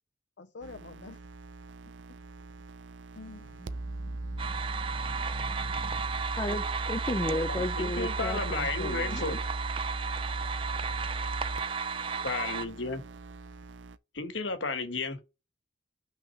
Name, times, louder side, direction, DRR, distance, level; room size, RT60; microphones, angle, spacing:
voice 1, 0.4-1.2 3.1-3.5 12.0-12.3, left 3 dB, 75° left, 0.6 m, -46 dB
sound 1, 0.6-14.0, right 2 dB, 90° right, 0.6 m, -38 dB
sound 2, 3.1-8.7 9.2-11.1, left 1 dB, 45° left, 1.2 m, -52 dB
sound 3, 4.4-12.7, right 6 dB, 30° right, 0.4 m, -34 dB
voice 2, 6.4-9.3, left 1 dB, 25° left, 0.6 m, -33 dB
voice 3, 7.5-9.4 12.2-13.0 14.1-15.2, left 3 dB, 90° left, 1.4 m, -33 dB
5.9 x 3.7 x 5.9 m
head